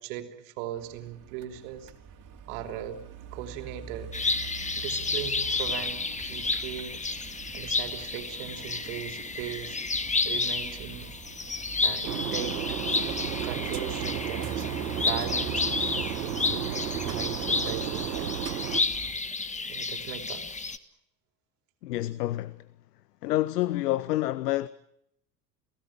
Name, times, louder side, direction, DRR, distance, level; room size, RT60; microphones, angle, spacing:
voice 1, 0.0-1.9 2.5-3.0 3.3-4.1 4.8-7.0 7.5-9.8 10.3-11.1 11.8-12.8 13.3-15.7 16.2-18.4 19.2-19.3 19.7-20.5, right 10 dB, 60° right, 3.5 m, -38 dB
sound 1, 0.8-19.1, right 5 dB, 40° right, 3.3 m, -44 dB
sound 2, 4.1-20.8, left 4 dB, 15° left, 1.6 m, -31 dB
sound 3, 12.0-18.8, right 11 dB, 80° right, 1.3 m, -33 dB
voice 2, 21.8-22.7 23.2-24.7, left 15 dB, 70° left, 0.9 m, -28 dB
30.0 x 17.5 x 9.0 m
figure-of-eight pair, 70°, 49 cm